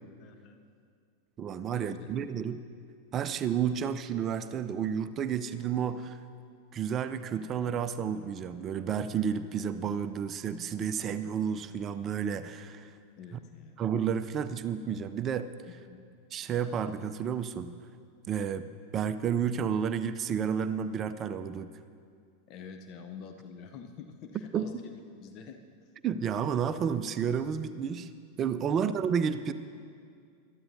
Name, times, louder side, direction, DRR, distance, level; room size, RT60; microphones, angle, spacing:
voice 1, 0.2-0.6 1.7-2.2 13.2-13.8 15.9-16.1 22.5-25.9 28.6-28.9, left 6 dB, 40° left, 6 dB, 0.7 m, -47 dB
voice 2, 1.4-2.6 3.1-6.2 6.7-12.9 13.8-15.5 16.3-17.7 18.3-18.6 18.9-21.7 24.5-24.7 26.0-28.1 28.4-29.5, right 7 dB, 30° right, 12 dB, 0.5 m, -31 dB
21.5 x 13.0 x 2.7 m, 2.3 s
figure-of-eight pair, 90°, 0 cm